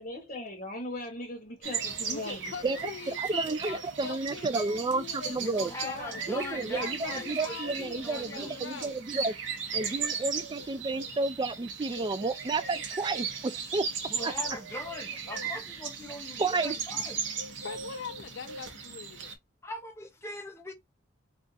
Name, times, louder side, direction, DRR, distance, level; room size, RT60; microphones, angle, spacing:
voice 1, 0.0-2.8 5.8-6.2, left 1 dB, 35° left, 0.9 m, -39 dB
sound 1, 1.6-19.3, right 6 dB, 70° right, 0.7 m, -37 dB
voice 2, 2.0-5.5 6.1-8.9 17.6-19.3, left 7 dB, 70° left, 0.4 m, -42 dB
voice 3, 3.1-5.7 6.3-9.3 9.7-13.8 14.2-14.3 16.4-16.8, right 3 dB, 25° right, 0.3 m, -31 dB
voice 4, 5.4-8.6 14.1-17.2 19.6-20.7, left 2 dB, 15° left, 0.7 m, -41 dB
2.4 x 2.4 x 3.8 m
head